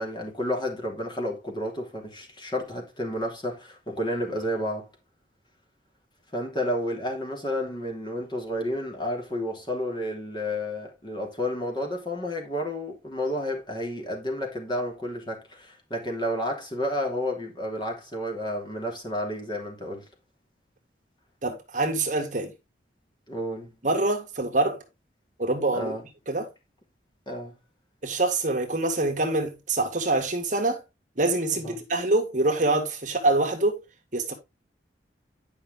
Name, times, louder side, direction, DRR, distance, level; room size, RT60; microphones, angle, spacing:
voice 1, 0.0-4.9 6.3-20.0 23.3-23.7 25.7-26.0 27.3-27.6 31.6-31.8, left 1 dB, 25° left, 2.8 m, -31 dB
voice 2, 21.4-22.5 23.8-24.8 25.4-26.0 26.3-26.5 28.0-30.8 31.2-33.8 34.1-34.3, right 2 dB, 45° right, 1.7 m, -25 dB
10.0 x 5.6 x 3.8 m
head